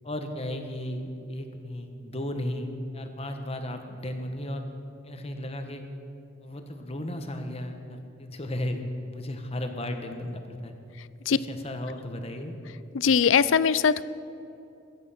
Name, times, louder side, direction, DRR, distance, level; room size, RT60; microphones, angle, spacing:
voice 1, 0.0-4.6 5.0-5.8 6.4-8.8 9.0-10.7 11.2-12.6, left 1 dB, 30° left, 6 dB, 1.3 m, -35 dB
voice 2, 12.9-14.0, left 6 dB, 70° left, 17 dB, 0.5 m, -21 dB
22.0 x 9.1 x 5.8 m, 2.7 s
head